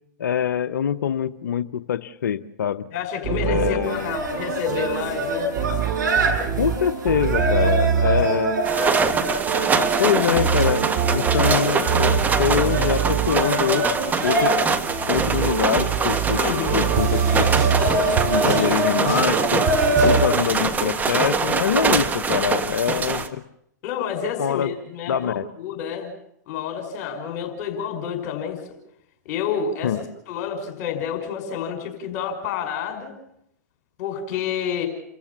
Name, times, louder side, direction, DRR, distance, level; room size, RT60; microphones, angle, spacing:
voice 1, 0.2-2.8 3.4-4.1 6.6-8.6 10.0-12.1 12.4-13.9 14.2-14.5 15.1-16.4 16.7-17.4 18.3-19.7 20.0-23.4 24.4-24.7 25.1-25.5 29.8-30.0, left 9 dB, 75° left, 12 dB, 0.8 m, -24 dB
voice 2, 2.9-5.5 7.6-7.7 8.0-8.3 8.8-8.9 16.4-16.9 18.6-18.7 23.8-26.1 26.5-28.6 29.3-33.1 34.0-34.9, left 7 dB, 45° left, 5 dB, 5.7 m, -29 dB
sound 1, 3.2-20.2, right 7 dB, 35° right, 4.7 m, -25 dB
sound 2, 3.8-21.2, right 1 dB, 75° right, 7.6 m, -26 dB
sound 3, 8.6-23.3, right 5 dB, 15° right, 1.4 m, -24 dB
30.0 x 14.5 x 7.2 m, 0.76 s
hypercardioid pair, 110°, 10 cm